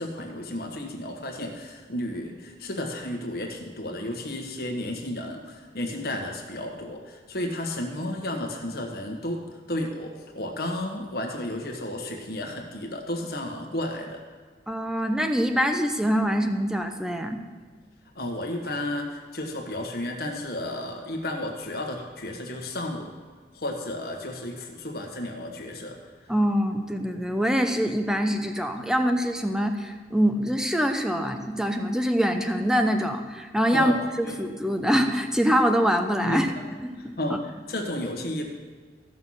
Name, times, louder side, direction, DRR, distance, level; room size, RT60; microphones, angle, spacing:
voice 1, 0.0-9.4 9.7-14.2 18.1-23.1 23.5-26.0 33.7-34.0 34.2-34.4 36.2-36.4 37.0-38.5, left 1 dB, 55° left, 2 dB, 1.4 m, -32 dB
voice 2, 14.7-17.4 26.3-33.9 34.2-36.5 36.8-37.2, equal, 5° right, 6 dB, 0.7 m, -24 dB
14.5 x 6.3 x 5.6 m, 1.5 s
head